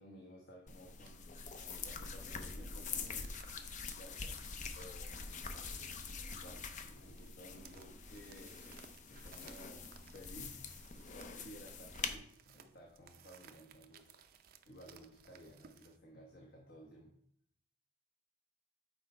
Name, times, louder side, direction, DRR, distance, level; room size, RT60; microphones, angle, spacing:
voice 1, 0.0-4.4 4.7-5.4 6.3-8.6 9.0-10.8 11.1-14.1 14.7-17.1, equal, 60° left, -1 dB, 1.1 m, -56 dB
sound 1, 0.7-12.2, left 5 dB, 45° left, 0.5 m, -45 dB
sound 2, 1.0-16.0, right 7 dB, 55° right, 0.5 m, -62 dB
6.3 x 4.4 x 4.3 m, 0.67 s
head